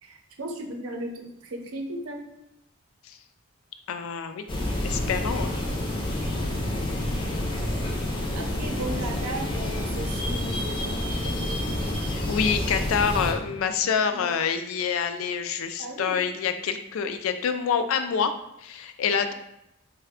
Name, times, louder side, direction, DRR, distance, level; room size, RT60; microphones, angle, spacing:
voice 1, 0.0-2.3 7.6-8.1 8.3-11.7 14.1-14.3 15.8-16.2 19.3-19.4, right 1 dB, 90° right, 2 dB, 0.6 m, -36 dB
voice 2, 3.9-4.4 4.8-5.5 12.1-18.3 18.6-19.3, left 6 dB, 75° left, 9 dB, 0.3 m, -26 dB
sound 1, 4.5-13.3, left 1 dB, 20° left, 0.5 m, -28 dB
3.3 x 2.2 x 3.5 m, 0.82 s
head